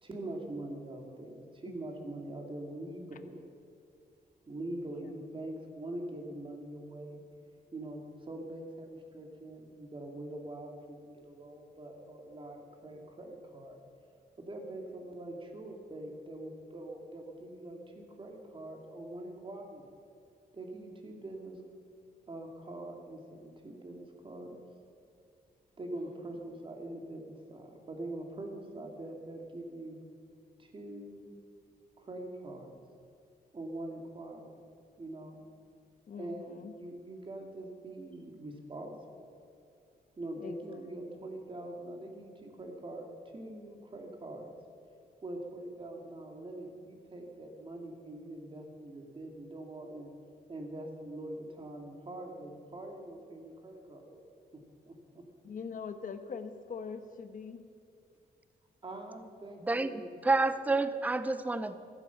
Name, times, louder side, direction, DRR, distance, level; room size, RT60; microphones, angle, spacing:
voice 1, 0.0-3.4 4.5-7.2 7.7-13.8 14.4-19.8 20.5-21.6 22.3-24.6 25.8-30.0 30.6-31.3 32.0-32.7 33.5-34.5 35.0-35.5 36.2-39.3 40.2-43.1 43.3-44.5 45.2-50.1 50.5-54.3 54.9-55.2 58.8-60.2, right 1 dB, 30° right, 2 dB, 2.2 m, -43 dB
voice 2, 36.1-36.7 40.4-40.8 41.1-41.2 55.4-57.6, left 5 dB, 55° left, 9 dB, 1.1 m, -43 dB
voice 3, 59.7-61.8, right 3 dB, 10° right, 12 dB, 0.6 m, -29 dB
15.5 x 14.5 x 5.7 m, 2.5 s
wide cardioid pair, 145°, 16 cm